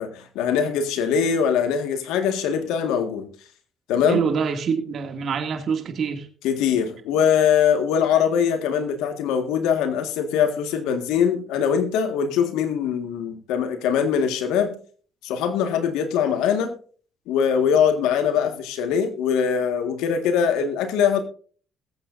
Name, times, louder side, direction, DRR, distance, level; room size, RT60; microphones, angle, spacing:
voice 1, 0.0-3.3 3.9-4.2 6.4-14.8 15.2-16.7 17.3-21.2, left 7 dB, 85° left, 1.8 m, -22 dB
voice 2, 4.1-6.3, right 6 dB, 55° right, 2.4 m, -25 dB
21.0 x 8.4 x 2.6 m
cardioid pair, 80°, 0 cm